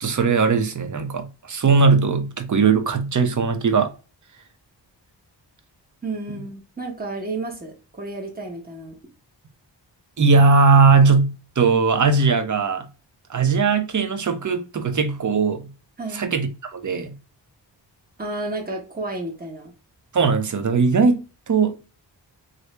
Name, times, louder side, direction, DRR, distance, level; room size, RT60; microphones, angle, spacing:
voice 1, 0.0-3.9 10.2-12.9 13.3-15.7 16.1-17.1 20.1-21.9, right 4 dB, 40° right, 0.6 m, -19 dB
voice 2, 6.0-9.0 16.0-16.3 18.2-19.7, right 2 dB, 20° right, 1.1 m, -31 dB
3.1 x 2.6 x 3.2 m
wide cardioid pair, 65°, 45 cm